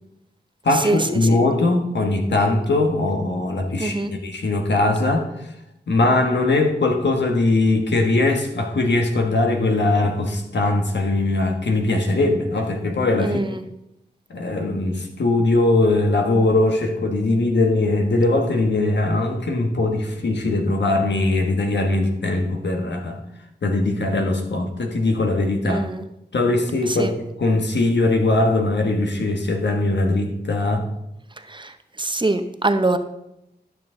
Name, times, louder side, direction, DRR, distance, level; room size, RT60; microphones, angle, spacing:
voice 1, 0.6-5.3 5.9-13.4 14.3-23.2 23.6-25.8 26.3-30.9, left 2 dB, 90° left, 3 dB, 1.3 m, -20 dB
voice 2, 3.8-4.1 13.2-13.6 25.7-26.0 26.9-27.1 31.5-31.7 32.0-33.0, right 2 dB, 25° right, 8 dB, 0.7 m, -23 dB
11.5 x 6.6 x 3.8 m, 0.86 s
wide cardioid pair, 70°, 18 cm